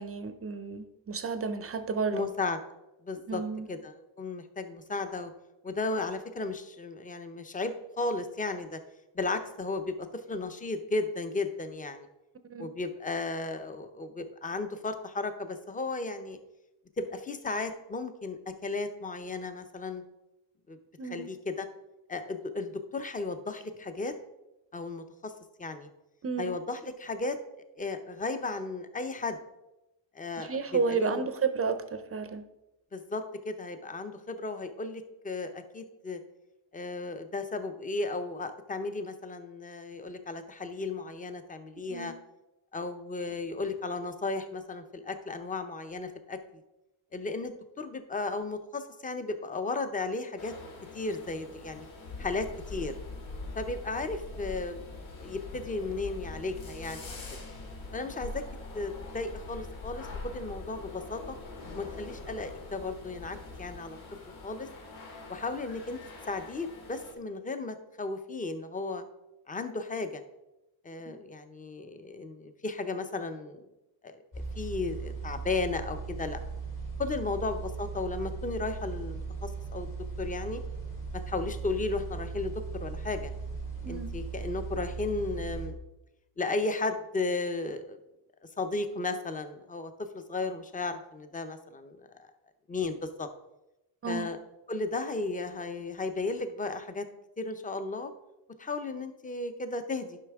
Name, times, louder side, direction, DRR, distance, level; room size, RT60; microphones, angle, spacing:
voice 1, 0.0-2.3 3.3-3.7 12.5-12.7 21.0-21.3 26.2-26.5 30.4-32.4 41.9-42.1 71.1-71.2 77.2-77.3 83.8-84.1 94.0-94.3, right 5 dB, 30° right, 10 dB, 0.5 m, -32 dB
voice 2, 2.1-2.6 3.0-3.4 3.7-5.3 5.6-8.8 9.1-12.1 12.6-16.4 17.0-20.0 20.7-20.8 21.0-21.7 22.1-24.1 24.7-25.3 25.6-25.9 26.4-27.4 27.8-29.4 30.1-31.2 32.9-36.2 36.7-42.1 42.7-46.4 47.1-50.5 50.9-51.9 52.2-52.9 53.5-54.8 55.2-57.2 57.9-58.4 58.7-61.4 61.7-64.0 64.4-64.7 65.3-66.0 66.3-69.0 69.5-70.2 70.8-73.7 74.0-74.2 74.6-76.4 77.0-79.9 80.2-80.6 81.1-83.3 83.9-85.8 86.4-88.0 88.6-92.3 92.7-93.3 94.1-94.4 94.7-97.1 97.4-98.1 98.6-100.2, left 3 dB, 20° left, 9 dB, 0.6 m, -34 dB
sound 1, 50.4-67.1, left 3 dB, 90° left, 2.0 m, -47 dB
sound 2, 52.0-63.8, left 3 dB, 70° left, 1.0 m, -44 dB
sound 3, 74.3-85.7, right 5 dB, 45° left, 2.6 m, -38 dB
11.0 x 5.6 x 3.5 m, 0.94 s
wide cardioid pair, 145°, 46 cm